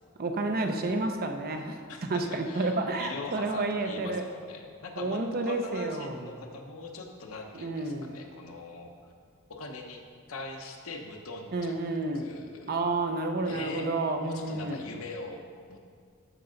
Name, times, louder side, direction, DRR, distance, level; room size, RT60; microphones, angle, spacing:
voice 1, 0.2-1.8 2.1-4.3 5.0-6.3 7.5-8.1 11.5-12.2 12.7-14.8, right 2 dB, 45° right, 5 dB, 0.7 m, -30 dB
voice 2, 1.9-8.9 9.5-10.0 10.3-11.8 12.1-12.8 13.4-13.9 14.2-15.8, left 3 dB, 70° left, 3 dB, 1.0 m, -41 dB
12.5 x 5.3 x 3.9 m, 2.1 s
head